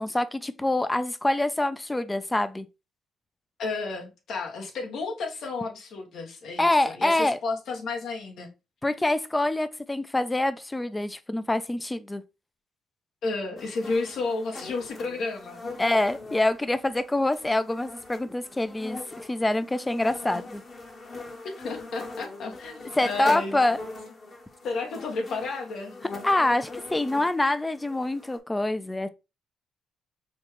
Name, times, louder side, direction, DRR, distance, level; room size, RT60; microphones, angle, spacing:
voice 1, 0.0-2.7 6.6-7.4 8.8-12.2 15.8-19.0 19.3-20.6 22.9-23.8 26.2-29.1, left 2 dB, 15° left, 0.4 m, -25 dB
voice 2, 3.6-8.5 13.2-15.6 20.3-20.5 21.4-23.6 24.6-25.9, left 3 dB, 70° left, 1.1 m, -32 dB
sound 1, 13.6-28.4, left 2 dB, 40° left, 1.2 m, -42 dB
5.2 x 2.3 x 3.1 m
cardioid pair, 90°, 0 cm